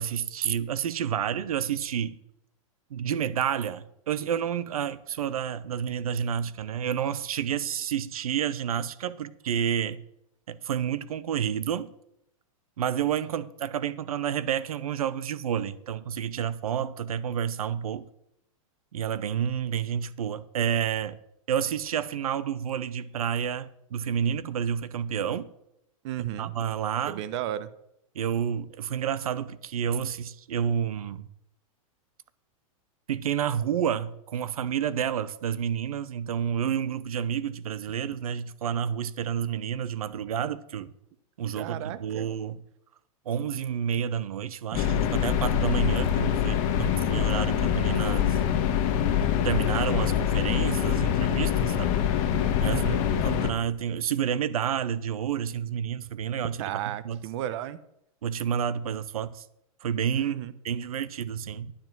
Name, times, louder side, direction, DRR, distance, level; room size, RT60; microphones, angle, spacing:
voice 1, 0.0-2.2 2.9-10.0 10.5-11.9 12.8-18.0 18.9-21.2 21.5-25.5 26.4-27.2 28.1-31.3 33.1-40.9 41.4-42.6 43.3-48.4 49.4-51.9 52.6-52.8 53.2-56.6 57.0-57.2 58.2-59.5 59.8-60.4 60.6-61.7, right 8 dB, 90° right, 0.7 m, -29 dB
voice 2, 26.0-26.6 27.1-27.7 41.5-42.3 52.6-53.0 56.6-57.8 60.2-60.5, right 12 dB, 55° right, 0.8 m, -34 dB
sound 1, 44.7-53.5, left 9 dB, 45° left, 1.3 m, -25 dB
10.5 x 7.2 x 6.1 m
hypercardioid pair, 135°, 18 cm